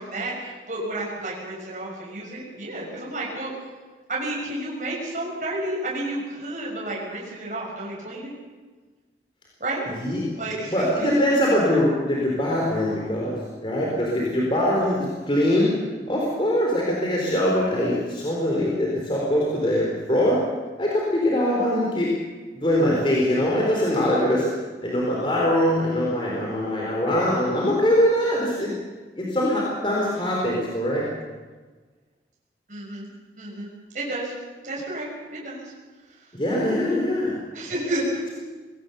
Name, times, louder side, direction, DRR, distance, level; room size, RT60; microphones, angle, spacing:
voice 1, 0.0-3.5 4.1-8.3 9.6-9.8 10.4-10.9 32.7-33.1 33.4-34.3 34.6-35.6 37.5-38.3, right 1 dB, 45° right, -4 dB, 6.3 m, -31 dB
voice 2, 10.7-15.7 16.1-20.4 20.8-22.1 22.5-24.5 24.8-28.7 29.2-31.0 36.3-37.4, left 1 dB, 30° left, -3 dB, 4.0 m, -22 dB
22.5 x 18.5 x 6.9 m, 1.4 s
head